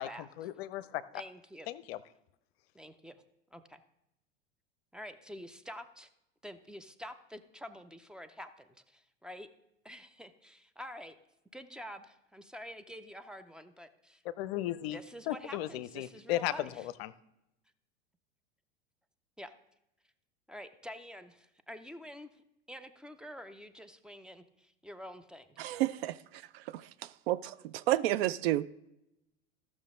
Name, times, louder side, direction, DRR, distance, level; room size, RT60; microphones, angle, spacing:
voice 1, 0.0-1.2 1.7-2.0 14.4-15.0 15.3-17.1, left 14 dB, 55° left, 0.6 m, -36 dB
voice 2, 1.1-1.7 2.7-3.2 3.5-3.8 4.9-6.1 6.4-9.5 9.8-11.1 11.5-14.2 14.9-16.8 19.4-19.5 20.5-25.8, equal, ahead, 0.5 m, -48 dB
voice 3, 25.6-28.6, right 14 dB, 55° right, 0.5 m, -32 dB
14.5 x 6.2 x 3.7 m
figure-of-eight pair, 85°, 37 cm